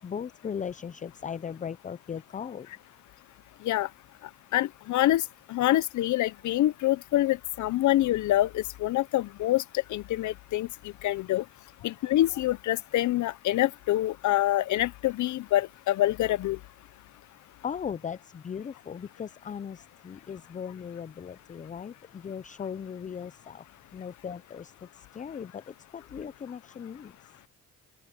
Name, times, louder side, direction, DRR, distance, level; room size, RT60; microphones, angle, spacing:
voice 1, 0.0-2.7 11.8-11.9 17.6-23.6 23.9-27.3, left 7 dB, 25° left, 0.5 m, -38 dB
voice 2, 4.5-5.2 5.5-9.6 9.9-10.7 11.0-11.4 11.8-16.6, left 14 dB, 75° left, 0.7 m, -26 dB
open air
cardioid pair, 90°, 30 cm